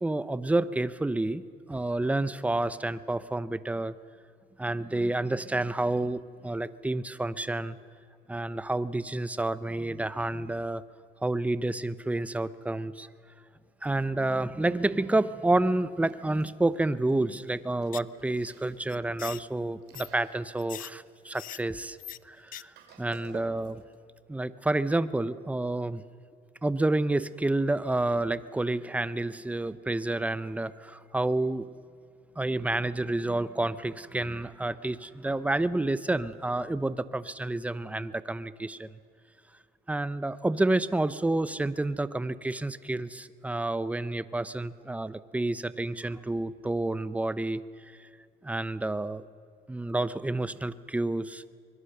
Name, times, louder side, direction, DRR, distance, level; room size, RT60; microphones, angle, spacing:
voice 1, 0.0-1.4 1.7-3.9 4.6-7.8 8.3-10.8 11.2-13.1 13.8-22.0 22.2-23.8 24.3-26.0 26.6-31.7 32.4-38.9 39.9-47.6 48.4-49.3 49.7-51.4, right 2 dB, 10° right, 15 dB, 0.7 m, -29 dB
Chewing mastication, 15.9-23.8, right 6 dB, 80° right, 3.6 m, -55 dB
sound 1, 17.9-18.2 18.4-18.5 18.9-19.4 19.9-20.1 20.6-20.9 21.3-21.6 22.0-22.2 22.5-22.6 22.9-23.0, left 13 dB, 55° left, 0.5 m, -41 dB
24.0 x 21.5 x 6.7 m, 2.3 s
cardioid pair, 110°, 17 cm